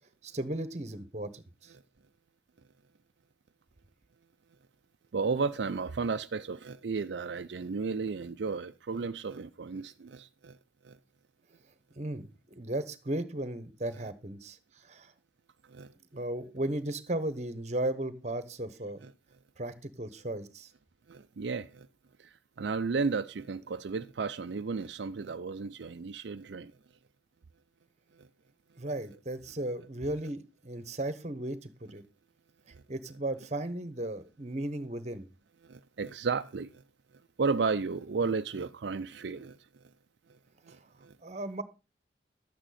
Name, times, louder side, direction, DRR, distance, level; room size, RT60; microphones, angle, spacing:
voice 1, 0.2-1.7 12.0-15.1 16.1-19.0 19.6-20.7 28.8-32.0 32.9-35.3 40.7-40.8 41.2-41.6, right 1 dB, 40° right, 1.1 m, -36 dB
voice 2, 5.1-10.6 10.8-10.9 15.7-15.9 21.1-21.9 22.6-26.7 35.7-36.7 37.4-39.6 40.7-40.8 41.0-41.1, right 4 dB, 70° right, 0.5 m, -33 dB
12.5 x 8.9 x 4.2 m
head